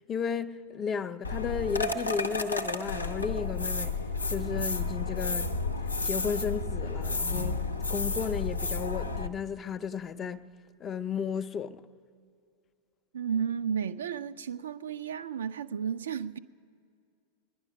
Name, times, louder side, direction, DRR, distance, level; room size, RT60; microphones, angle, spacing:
voice 1, 0.0-3.9 4.3-5.5 6.0-7.6 7.9-10.4 10.8-11.8, left 6 dB, 25° left, 0.5 m, -34 dB
sound 1, 1.2-9.3, left 3 dB, 80° left, 0.6 m, -31 dB
voice 2, 13.1-16.4, right 7 dB, 65° right, 0.4 m, -33 dB
20.0 x 10.5 x 5.7 m
figure-of-eight pair, 90°, 0 cm